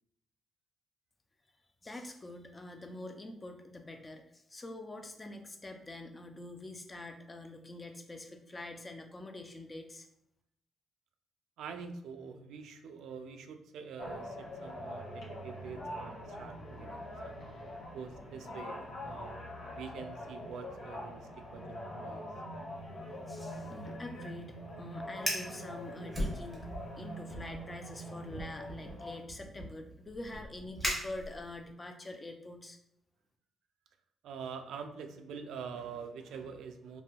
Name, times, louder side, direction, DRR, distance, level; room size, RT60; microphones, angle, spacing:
voice 1, 1.8-10.1 23.3-26.7 27.0-32.8, left 2 dB, 20° left, 5 dB, 0.3 m, -45 dB
voice 2, 11.6-17.4 17.9-19.4 19.7-22.3 34.2-37.0, right 6 dB, 85° right, 7 dB, 0.3 m, -45 dB
sound 1, 14.0-29.2, equal, 90° left, 0.9 m, -44 dB
Fire, 25.1-25.6 26.1-26.9 27.3-27.6 28.3-31.7, equal, 5° right, 0.7 m, -38 dB
3.2 x 2.5 x 2.3 m, 0.77 s
cardioid pair, 155°, 0 cm